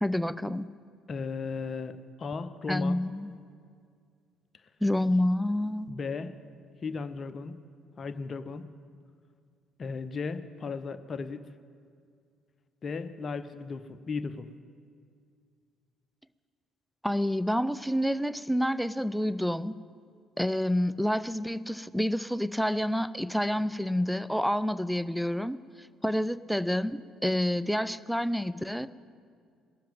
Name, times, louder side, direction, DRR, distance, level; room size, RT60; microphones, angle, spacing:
voice 1, 0.0-0.7 2.7-3.3 4.8-5.9 17.0-19.7 20.4-25.6 26.0-28.9, left 1 dB, ahead, 15 dB, 0.4 m, -28 dB
voice 2, 1.1-3.0 5.1-5.2 5.9-6.3 6.8-7.5 8.0-8.6 9.8-11.5 12.8-14.5, left 4 dB, 40° left, 10 dB, 0.7 m, -35 dB
17.5 x 7.6 x 8.8 m, 2.2 s
figure-of-eight pair, 45°, 0 cm